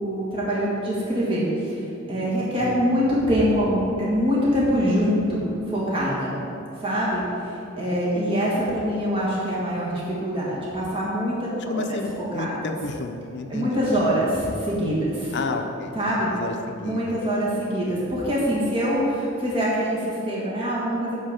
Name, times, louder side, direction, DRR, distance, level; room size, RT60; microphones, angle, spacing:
voice 1, 0.0-1.8 2.1-5.4 5.7-6.3 6.8-11.4 11.6-12.0 12.4-12.7 13.5-15.4 15.9-16.3 16.8-21.1, equal, 25° right, -7 dB, 1.7 m, -24 dB
voice 2, 2.6-2.9 11.7-13.8 15.3-17.3, left 3 dB, 60° left, 5 dB, 0.6 m, -31 dB
9.7 x 4.4 x 6.4 m, 2.7 s
head